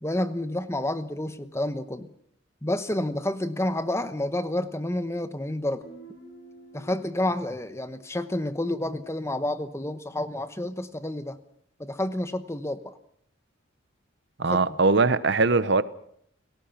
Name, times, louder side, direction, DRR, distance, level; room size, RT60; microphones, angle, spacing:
voice 1, 0.0-2.1 2.6-5.9 6.7-11.4 11.8-13.0 14.4-14.6, left 1 dB, 15° left, 1.0 m, -29 dB
Guitar, 5.8-9.4, right 2 dB, 60° left, 7.1 m, -51 dB
voice 2, 14.4-15.8, right 3 dB, 55° right, 1.0 m, -21 dB
29.5 x 18.5 x 5.9 m
head